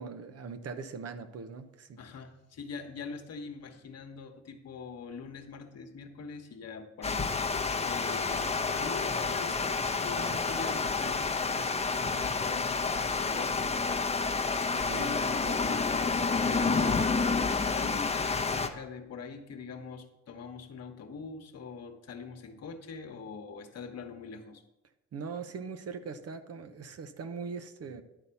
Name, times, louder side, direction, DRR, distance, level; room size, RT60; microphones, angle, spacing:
voice 1, 0.0-2.0 14.8-15.1 15.4-15.8 25.1-28.0, right 5 dB, 55° right, 9 dB, 0.9 m, -41 dB
voice 2, 2.0-13.9 14.7-15.6 15.9-24.6, left 5 dB, 55° left, 5 dB, 1.2 m, -43 dB
Water, 7.0-18.7, left 4 dB, 20° left, 0.8 m, -29 dB
11.0 x 4.1 x 6.9 m, 0.93 s
cardioid pair, 90°, 30 cm